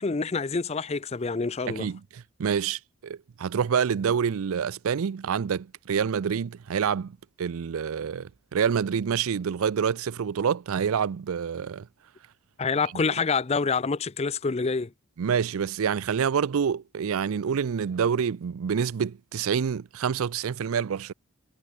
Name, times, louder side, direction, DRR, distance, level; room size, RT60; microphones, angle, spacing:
voice 1, 0.0-1.9 12.6-14.9, left 4 dB, 30° left, 0.5 m, -27 dB
voice 2, 1.7-11.9 13.0-13.1 15.2-21.1, right 7 dB, 70° right, 0.4 m, -27 dB
head